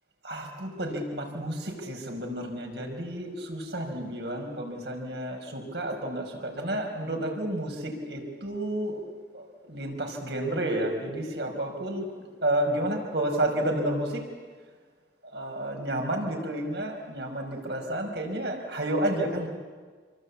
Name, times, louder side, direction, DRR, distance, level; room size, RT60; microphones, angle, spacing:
voice 1, 0.2-9.0 9.3-12.1 12.4-14.2 15.2-19.5, right 1 dB, 80° right, 2 dB, 5.2 m, -31 dB
27.5 x 23.5 x 8.4 m, 1.5 s
head